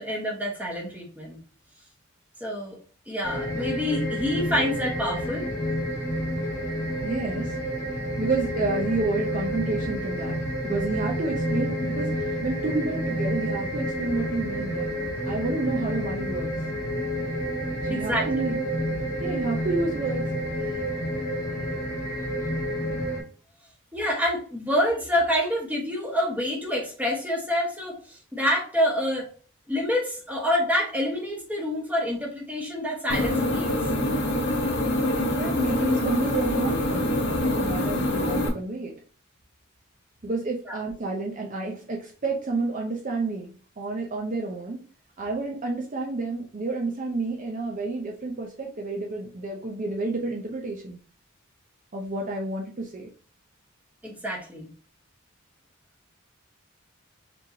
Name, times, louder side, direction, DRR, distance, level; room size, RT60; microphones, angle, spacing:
voice 1, 0.0-1.4 2.4-2.8 3.1-5.5 17.9-18.5 23.9-29.3 29.7-33.8 40.7-40.8 54.0-54.7, left 1 dB, 10° right, -1 dB, 1.1 m, -27 dB
sound 1, 3.2-23.2, equal, 15° left, 1.4 m, -29 dB
voice 2, 7.0-7.5 8.2-10.4 10.6-15.0 15.3-16.6 17.8-18.6 19.2-20.3 35.2-38.9 40.2-44.8 45.2-51.0 51.9-53.1, right 3 dB, 40° right, 0 dB, 0.6 m, -30 dB
sound 2, 33.1-38.5, left 1 dB, 55° left, 0.8 m, -25 dB
4.3 x 3.1 x 2.7 m, 0.40 s
head